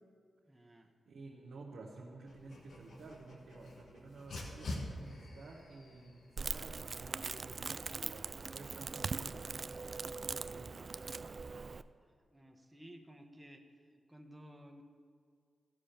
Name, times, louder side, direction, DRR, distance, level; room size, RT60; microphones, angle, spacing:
voice 1, 0.5-0.9 12.3-13.6 14.1-14.8, equal, 15° right, 3 dB, 1.2 m, -55 dB
voice 2, 1.1-10.9, right 3 dB, 75° right, -4 dB, 1.2 m, -52 dB
Dog, 2.3-11.4, left 1 dB, 70° left, 1.4 m, -50 dB
Crackle, 6.4-11.8, right 4 dB, 55° right, 0.3 m, -41 dB
14.5 x 4.9 x 5.8 m, 2.2 s
supercardioid pair, 45°, 0 cm